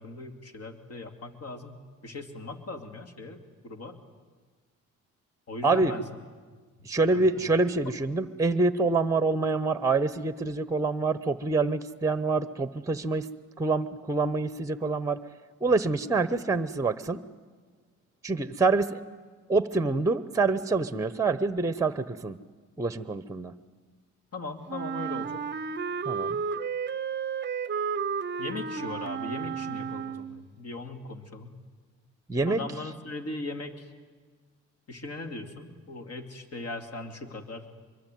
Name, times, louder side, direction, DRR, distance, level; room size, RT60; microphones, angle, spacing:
voice 1, 0.0-3.9 5.5-6.0 7.1-7.5 24.3-25.4 28.4-31.6 32.5-33.9 34.9-37.7, left 2 dB, 55° left, 6 dB, 2.9 m, -39 dB
voice 2, 6.8-13.3 13.6-15.2 15.6-17.2 18.2-19.0 19.5-22.4 22.8-23.5 26.1-26.4 32.3-32.6, right 3 dB, 10° right, 14 dB, 0.9 m, -26 dB
Wind instrument woodwind instrument, 24.7-30.5, right 6 dB, 35° right, 0.7 m, -32 dB
24.0 x 22.5 x 9.3 m, 1.4 s
cardioid pair, 90°, 30 cm